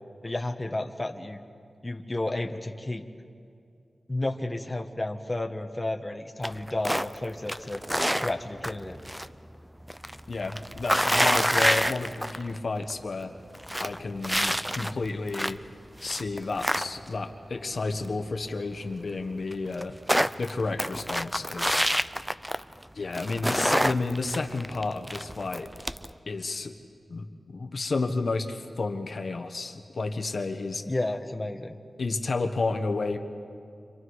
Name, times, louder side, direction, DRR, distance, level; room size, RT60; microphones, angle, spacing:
voice 1, 0.2-1.4 1.8-3.0 4.1-7.8 8.2-9.0 30.9-31.7, left 2 dB, 25° left, 3 dB, 1.3 m, -32 dB
sound 1, 6.4-7.2 7.5-9.3 9.6-12.6 12.9-13.0 13.4-15.7 16.0-17.3 18.8-18.9 19.1-19.2 19.5-22.8 23.1-26.1, equal, 5° right, 0.6 m, -27 dB
voice 2, 10.3-13.3 13.8-15.6 16.0-19.9 20.4-21.8 22.9-25.7 26.3-26.7 27.1-30.8 32.0-33.2, left 3 dB, 65° left, 5 dB, 1.3 m, -31 dB
29.5 x 26.5 x 4.8 m, 2.4 s
wide cardioid pair, 75°, 0 cm